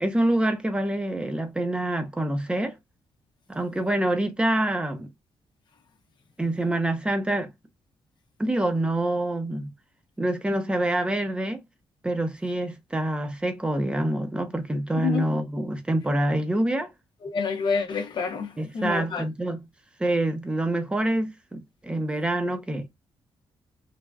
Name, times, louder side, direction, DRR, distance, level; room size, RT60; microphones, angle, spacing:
voice 1, 0.0-2.8 3.5-5.1 6.4-7.5 8.4-9.7 10.2-11.6 12.0-16.9 18.6-19.6 20.0-22.9, right 1 dB, 10° right, 0.6 m, -26 dB
voice 2, 14.9-15.2 17.2-19.2, left 5 dB, 55° left, 0.7 m, -28 dB
3.3 x 2.4 x 2.2 m
cardioid pair, 130°, 9 cm